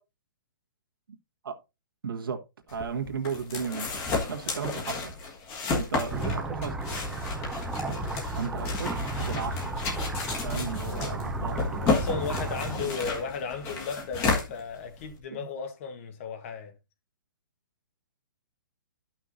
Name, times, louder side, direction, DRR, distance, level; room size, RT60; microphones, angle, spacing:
voice 1, 2.0-2.4 2.7-3.9 4.3-5.1 5.7-7.1 8.3-9.8 10.3-12.3 12.8-12.9 15.3-15.5, right 6 dB, 90° right, 1.6 m, -35 dB
sound 1, 2.7-15.2, left 3 dB, 20° left, 1.5 m, -32 dB
sound 2, 6.1-12.7, right 1 dB, 5° right, 0.6 m, -33 dB
voice 2, 10.8-11.1 11.9-16.7, left 6 dB, 35° left, 1.2 m, -35 dB
13.0 x 5.9 x 2.6 m
hypercardioid pair, 165°, 11 cm